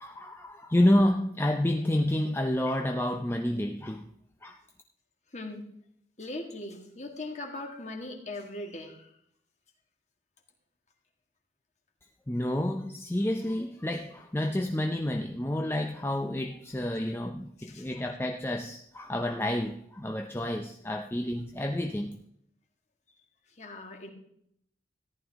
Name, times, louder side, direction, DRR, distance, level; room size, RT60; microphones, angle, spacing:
voice 1, 0.0-4.1 4.4-4.6 12.3-22.2, left 1 dB, 10° left, 4 dB, 0.5 m, -29 dB
voice 2, 5.3-5.6 6.2-9.1 17.6-17.9 23.5-24.1, left 2 dB, 40° left, 3 dB, 1.9 m, -40 dB
14.0 x 11.0 x 3.5 m, 0.71 s
head